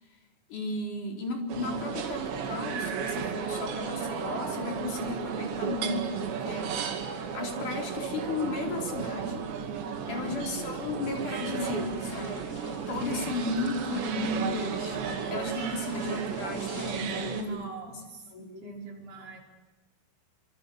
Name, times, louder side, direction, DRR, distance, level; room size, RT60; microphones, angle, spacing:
voice 1, 0.5-6.8 7.3-9.5 10.1-12.5 12.9-15.0 15.3-17.6 18.3-18.9, left 2 dB, 45° left, 3 dB, 5.6 m, -34 dB
sound 1, 1.5-17.4, right 6 dB, 75° right, 4.7 m, -34 dB
voice 2, 10.0-10.6 17.0-19.4, left 1 dB, 50° right, 0 dB, 7.2 m, -42 dB
sound 2, 11.6-17.5, left 2 dB, 30° left, 2.3 m, -46 dB
27.5 x 26.0 x 7.3 m, 1.1 s
omnidirectional pair, 5.0 m